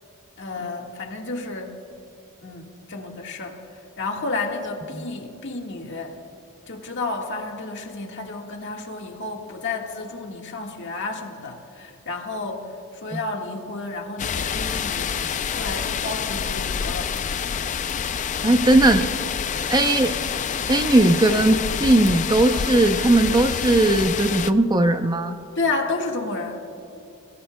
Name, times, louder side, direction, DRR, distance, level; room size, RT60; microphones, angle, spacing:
voice 1, 0.4-1.7 2.4-3.6 4.0-6.2 6.7-15.2 15.6-17.1 25.5-26.6, left 3 dB, 55° left, 1 dB, 1.6 m, -31 dB
sound 1, 14.2-24.5, left 7 dB, 35° left, 0.4 m, -27 dB
voice 2, 18.4-19.0 19.7-20.2 20.7-25.4, right 2 dB, 20° right, 7 dB, 0.5 m, -18 dB
27.5 x 17.0 x 2.2 m, 2.8 s
head